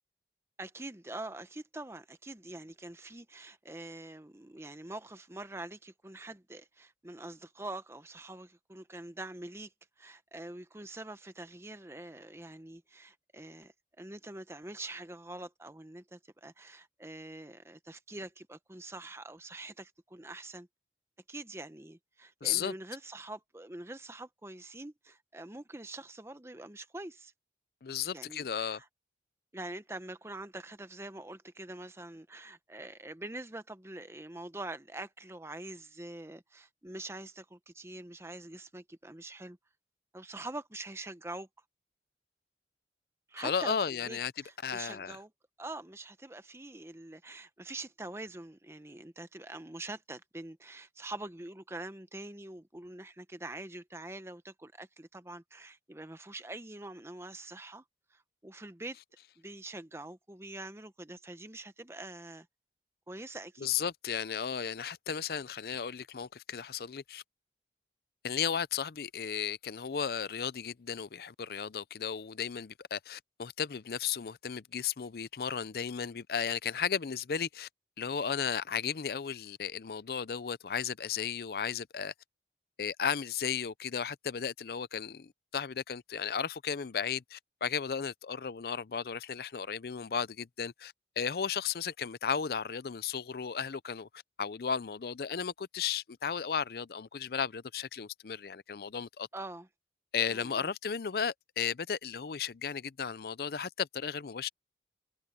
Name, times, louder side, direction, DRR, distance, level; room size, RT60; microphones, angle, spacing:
voice 1, 0.6-9.7 10.0-20.7 21.3-27.3 28.1-28.9 29.5-39.6 40.1-41.5 43.3-45.3 45.6-57.8 58.1-59.0 59.4-62.5 63.1-63.7 99.3-99.7 100.3-100.7, right 2 dB, 15° right, 0.8 m, -45 dB
voice 2, 22.4-22.7 27.8-28.8 43.4-44.3 44.6-45.2 63.6-67.2 68.2-77.7 78.0-82.1 82.8-99.3 100.1-104.5, left 7 dB, 60° left, 0.5 m, -34 dB
head